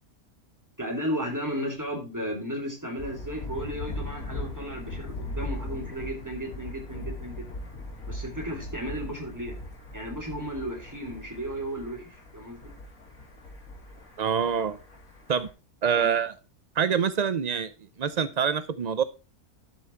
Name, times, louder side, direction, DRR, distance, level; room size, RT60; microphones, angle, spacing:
voice 1, 0.8-7.4 8.1-9.6 9.9-12.6 15.9-16.1, equal, 10° right, 1 dB, 3.2 m, -34 dB
Thunder, 3.0-15.5, left 1 dB, 65° left, 3.1 m, -39 dB
voice 2, 14.2-14.8 15.3-15.5 15.8-16.3 16.8-17.7 18.0-19.0, right 7 dB, 70° right, 13 dB, 0.4 m, -25 dB
11.5 x 6.1 x 4.5 m, 0.31 s
omnidirectional pair, 1.6 m